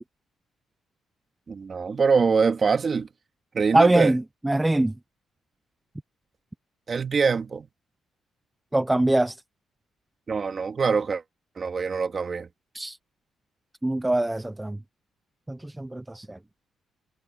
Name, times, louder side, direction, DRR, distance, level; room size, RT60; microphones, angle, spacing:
voice 1, 1.5-3.1 3.5-4.1 6.9-7.7 10.3-11.2 11.6-12.5, right 5 dB, 40° right, 2.2 m, -23 dB
voice 2, 3.7-4.9 8.7-9.4 12.7-13.0 13.8-14.8 15.5-16.4, right 1 dB, 10° right, 0.6 m, -23 dB
cardioid pair, 90°, 0 cm